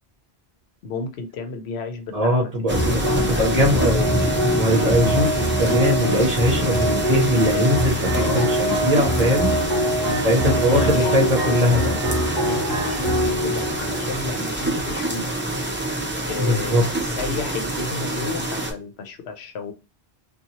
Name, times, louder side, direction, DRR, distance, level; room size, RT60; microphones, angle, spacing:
voice 1, 0.8-4.1 5.0-5.3 8.1-8.5 10.0-12.0 12.4-15.3 16.3-19.7, left 4 dB, 85° left, 0.9 m, -32 dB
voice 2, 2.1-3.0 3.3-4.2 4.5-9.8 10.2-11.8 16.4-16.8, equal, 40° right, 0.8 m, -21 dB
sound 1, 2.7-15.2, equal, 20° left, 1.0 m, -25 dB
sound 2, 2.7-18.7, right 1 dB, 15° right, 0.4 m, -26 dB
sound 3, 3.2-13.0 15.4-15.5, right 2 dB, 75° right, 0.8 m, -30 dB
2.7 x 2.3 x 2.8 m
omnidirectional pair, 1.1 m